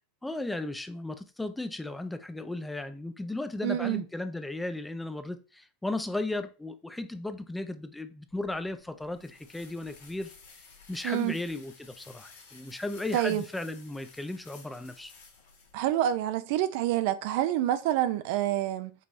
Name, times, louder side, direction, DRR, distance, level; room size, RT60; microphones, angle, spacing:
voice 1, 0.2-10.3 10.9-15.1, left 2 dB, 5° left, 0.5 m, -35 dB
voice 2, 3.6-4.0 11.0-11.3 13.1-13.4 15.7-18.9, right 12 dB, 65° right, 0.4 m, -27 dB
sound 1, 8.3-16.2, left 4 dB, 80° left, 1.3 m, -54 dB
5.4 x 3.0 x 2.6 m
hypercardioid pair, 100°, 0 cm